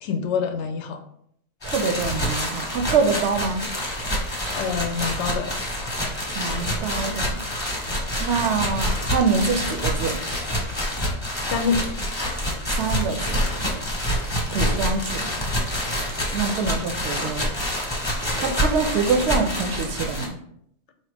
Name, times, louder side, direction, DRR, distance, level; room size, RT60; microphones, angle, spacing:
voice 1, 0.0-1.0 4.5-5.5 11.4-12.0, left 5 dB, 75° left, 6 dB, 0.9 m, -26 dB
sound 1, 1.6-20.3, equal, 25° left, 1.0 m, -27 dB
voice 2, 1.6-3.6 6.3-7.4 8.2-10.2 12.7-13.5 14.5-15.3 16.3-17.5 18.4-20.4, right 5 dB, 70° right, 6 dB, 0.8 m, -25 dB
4.2 x 2.8 x 3.3 m, 0.70 s
omnidirectional pair, 1.2 m